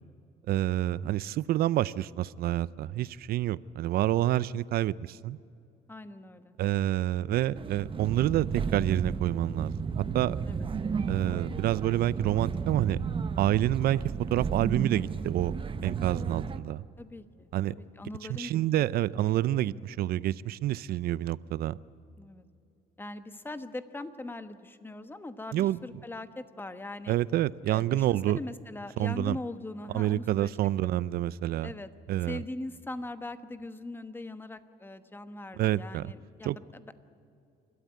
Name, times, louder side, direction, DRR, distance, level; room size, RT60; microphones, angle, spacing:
voice 1, 0.5-5.4 6.6-10.4 11.1-13.0 13.4-14.0 14.3-15.5 15.8-16.8 17.5-17.7 18.3-21.8 25.5-25.8 27.1-28.4 29.0-29.4 29.9-31.7 32.1-32.4 35.5-36.1 36.4-36.6, right 13 dB, 65° right, 19 dB, 0.5 m, -28 dB
voice 2, 5.9-6.5 10.5-10.7 17.0-18.9 19.6-19.9 22.2-22.4 23.0-27.2 27.7-30.5 30.8-30.9 31.6-31.9 32.3-36.9, left 2 dB, 10° left, 10 dB, 1.1 m, -41 dB
sound 1, 7.5-16.6, right 5 dB, 30° right, 0.9 m, -33 dB
28.5 x 13.0 x 9.5 m, 2.6 s
cardioid pair, 110°, 17 cm